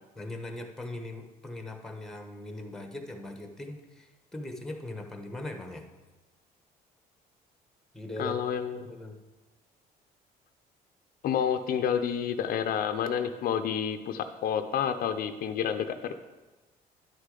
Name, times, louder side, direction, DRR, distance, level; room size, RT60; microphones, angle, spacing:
voice 1, 0.2-5.8 7.9-8.4 8.7-9.2, left 1 dB, 5° left, 4 dB, 1.0 m, -40 dB
voice 2, 8.2-8.9 11.2-16.1, left 8 dB, 60° left, 8 dB, 0.5 m, -29 dB
10.5 x 6.3 x 3.8 m, 1.2 s
cardioid pair, 110°, 17 cm